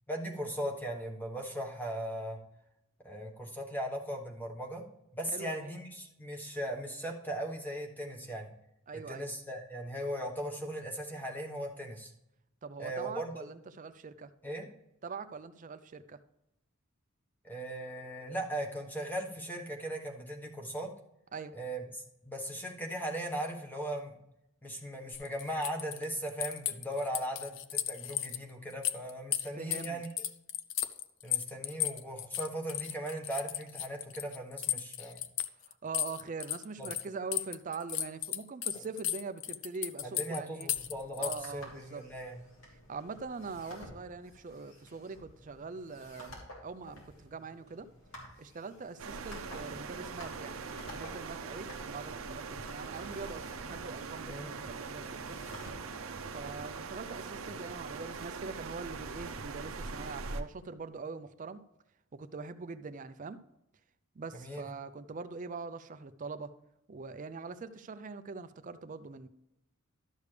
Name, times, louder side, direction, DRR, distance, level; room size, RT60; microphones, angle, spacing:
voice 1, 0.1-2.4 3.0-4.9 5.1-8.5 9.1-12.1 12.8-13.4 14.4-14.7 17.4-20.9 21.5-21.8 22.2-24.1 24.6-30.1 31.2-35.3 36.8-36.9 40.0-42.4 54.3-54.6 64.3-64.7, right 1 dB, 10° left, 0 dB, 1.2 m, -38 dB
voice 2, 5.3-5.8 8.9-9.3 12.6-14.3 15.0-16.2 21.3-21.6 29.6-30.0 35.7-40.7 41.2-42.0 42.9-47.9 48.4-55.4 56.2-61.6 62.1-63.4 64.2-66.5 66.9-69.3, right 4 dB, 40° right, 12 dB, 0.5 m, -43 dB
sound 1, 25.1-28.4 28.7-37.0 37.3-41.4, left 12 dB, 65° left, 0.5 m, -35 dB
sound 2, 40.7-57.7, left 1 dB, 85° left, 3.1 m, -53 dB
sound 3, 49.0-60.4, right 4 dB, 80° right, 0.7 m, -42 dB
12.0 x 6.7 x 3.3 m, 0.85 s
head